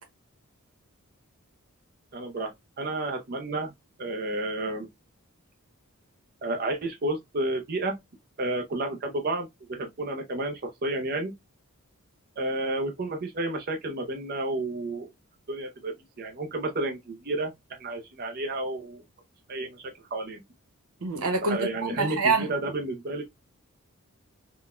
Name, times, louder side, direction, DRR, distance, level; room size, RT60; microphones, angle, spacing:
voice 1, 2.1-2.5 2.8-3.7 4.0-4.9 6.4-7.9 8.4-11.3 12.4-15.1 15.5-19.0 19.5-19.8 20.1-20.4 21.4-23.2, right 2 dB, 45° right, 0.5 m, -31 dB
voice 2, 21.0-21.6 22.0-22.5, right 4 dB, 90° right, 1.0 m, -25 dB
3.7 x 2.2 x 2.4 m
head